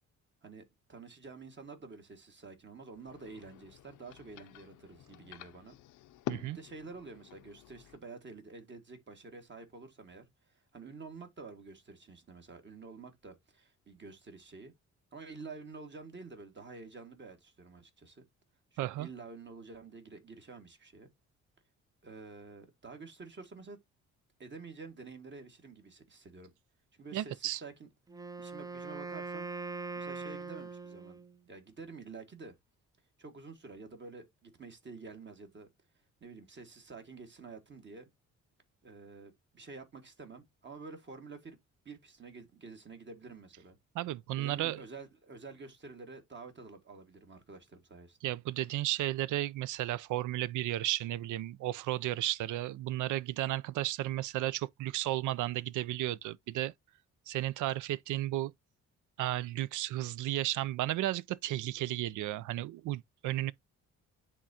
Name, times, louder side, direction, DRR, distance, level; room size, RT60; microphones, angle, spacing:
voice 1, 0.4-5.8 6.5-14.7 15.1-18.2 18.7-21.1 22.0-23.8 24.4-26.5 26.9-27.9 28.4-29.5 30.0-32.6 33.2-35.7 36.2-38.1 38.8-41.6 41.9-43.8 44.4-48.4, right 4 dB, 40° right, 2.0 m, -49 dB
sound 1, 2.9-8.0, left 15 dB, 90° left, 0.6 m, -47 dB
voice 2, 18.8-19.1 27.1-27.6 43.9-44.8 48.2-56.7 57.3-58.5 59.2-63.5, right 15 dB, 80° right, 0.5 m, -33 dB
Wind instrument woodwind instrument, 28.1-31.4, right 4 dB, 10° right, 0.4 m, -41 dB
9.9 x 3.7 x 2.8 m
cardioid pair, 90°, 30 cm